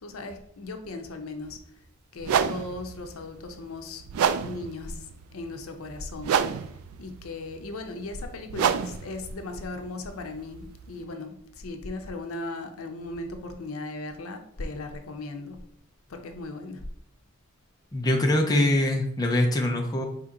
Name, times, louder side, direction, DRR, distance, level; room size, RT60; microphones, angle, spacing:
voice 1, 0.0-1.8 2.1-4.0 4.4-15.6 16.1-16.8, left 2 dB, 85° left, 6 dB, 0.6 m, -37 dB
sound 1, 1.4-1.6 2.2-11.0, right 7 dB, 85° right, 0.3 m, -30 dB
voice 2, 17.9-20.0, left 1 dB, 20° left, 1 dB, 0.5 m, -23 dB
4.3 x 2.9 x 3.7 m, 0.69 s
head